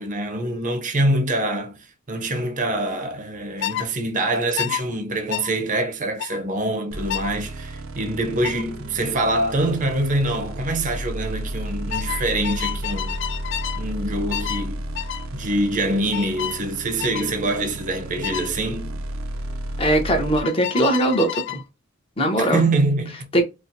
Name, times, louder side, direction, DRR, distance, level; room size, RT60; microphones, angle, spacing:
voice 1, 0.0-1.8 2.1-13.2 13.8-14.9 15.3-18.9 22.4-23.4, right 1 dB, 40° right, 0.7 m, -25 dB
sound 1, 3.6-3.9 4.6-4.8 5.3-5.5 6.2-6.4 7.1-7.3 8.4-8.6 10.1-10.3 10.6-11.0 11.9-13.8 14.3-14.7 15.0-15.3 16.1-16.6 17.0-17.3 18.2-18.5 20.4-21.6, left 12 dB, 60° left, 0.3 m, -30 dB
sound 2, 6.9-20.4, right 1 dB, 75° right, 0.6 m, -33 dB
voice 2, 19.8-21.6 22.2-22.7 23.3-23.4, right 1 dB, 30° left, 0.9 m, -20 dB
4.3 x 2.2 x 2.6 m
head